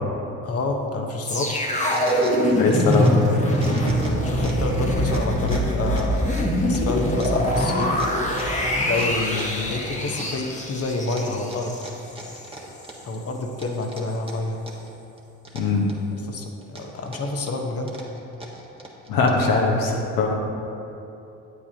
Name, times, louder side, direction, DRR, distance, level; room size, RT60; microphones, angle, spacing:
voice 1, 0.4-1.5 4.0-8.0 8.9-11.8 13.0-14.7 16.3-17.9, left 2 dB, 40° left, 3 dB, 1.1 m, -28 dB
sound 1, 1.3-12.5 12.8-12.9, equal, 20° left, 1.3 m, -23 dB
sound 2, 1.6-3.3 3.5-4.7 5.1-9.7 10.2-10.8 11.1-13.2 13.6-14.9 15.2-16.2 16.6-19.5, right 1 dB, 15° right, 1.4 m, -40 dB
voice 2, 2.5-3.3 15.5-15.9 19.1-20.3, left 3 dB, 70° left, -1 dB, 1.2 m, -21 dB
8.4 x 8.1 x 2.8 m, 2.8 s
supercardioid pair, 65°, 35 cm